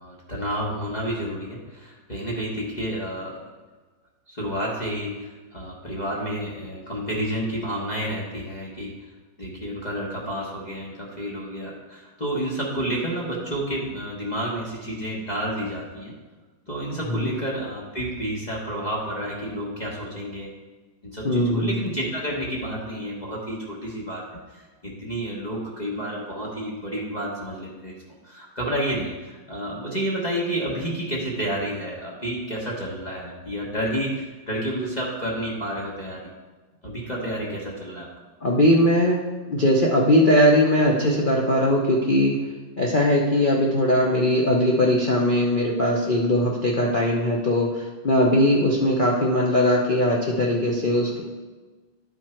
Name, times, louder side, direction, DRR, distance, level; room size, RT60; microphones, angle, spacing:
voice 1, 0.0-3.4 4.3-8.9 9.4-16.1 16.7-20.5 21.0-27.9 28.2-36.3 36.8-38.1, equal, 25° left, -5 dB, 1.1 m, -30 dB
voice 2, 21.2-21.7 38.4-42.4 42.8-51.2, left 1 dB, 75° left, -2 dB, 0.4 m, -20 dB
11.0 x 4.6 x 4.4 m, 1.3 s
omnidirectional pair, 2.1 m